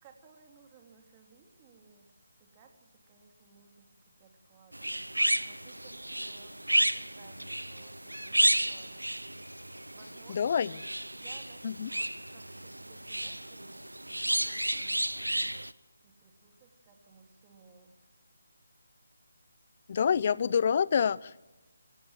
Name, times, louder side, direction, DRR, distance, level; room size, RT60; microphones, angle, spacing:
voice 1, 0.0-5.2 5.4-9.0 9.9-10.8 11.2-15.6 16.0-18.1, right 5 dB, 20° right, 4 dB, 3.2 m, -60 dB
sound 1, 4.7-15.7, right 1 dB, 90° right, 0.9 m, -32 dB
voice 2, 10.3-10.7 11.6-11.9 19.9-21.4, left 7 dB, 40° left, 21 dB, 0.6 m, -27 dB
27.0 x 16.0 x 7.4 m, 1.1 s
figure-of-eight pair, 150°, 0 cm